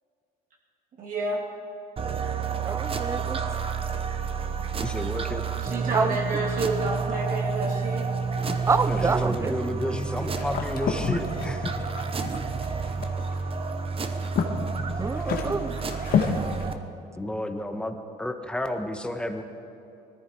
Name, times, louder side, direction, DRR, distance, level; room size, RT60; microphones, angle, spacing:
voice 1, 1.0-1.4 5.6-8.1, right 2 dB, 55° right, -2 dB, 2.8 m, -29 dB
sound 1, 2.0-16.7, right 5 dB, 35° right, 0.9 m, -30 dB
voice 2, 2.6-3.4 5.9-6.1 8.7-9.5 15.0-15.7, right 4 dB, 15° right, 14 dB, 0.6 m, -27 dB
voice 3, 4.8-5.5 8.6-11.7 15.4-15.5 17.1-19.4, left 1 dB, 5° left, 5 dB, 1.3 m, -32 dB
sound 2, 8.4-16.7, left 6 dB, 60° left, 1.8 m, -31 dB
20.0 x 14.0 x 4.8 m, 2.7 s
cardioid pair, 110°, 17 cm